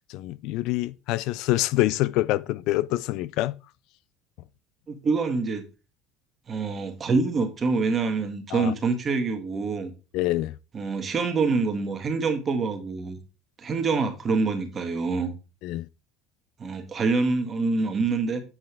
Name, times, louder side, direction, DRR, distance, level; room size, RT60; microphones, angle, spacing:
voice 1, 0.1-3.6 8.5-8.7 10.1-10.6 15.6-15.9, left 17 dB, 70° left, 0.4 m, -26 dB
voice 2, 4.9-5.6 6.5-9.9 10.7-13.2 13.6-15.3 16.6-18.4, right 4 dB, 35° right, 1.6 m, -26 dB
7.7 x 5.3 x 3.4 m
hypercardioid pair, 85°, 0 cm